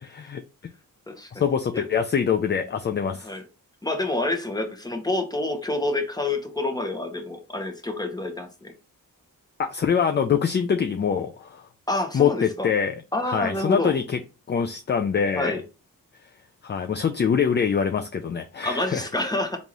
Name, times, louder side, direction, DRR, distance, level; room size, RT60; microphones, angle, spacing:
voice 1, 0.0-0.4 1.3-3.3 9.6-11.6 12.1-12.9 13.2-14.2 14.5-15.6 16.6-19.1, left 7 dB, 30° left, 0.4 m, -24 dB
voice 2, 3.8-8.7 11.9-12.7 13.1-13.9 15.3-15.6 18.6-19.6, left 2 dB, 10° left, 0.9 m, -28 dB
3.6 x 2.5 x 2.9 m
cardioid pair, 45°, 36 cm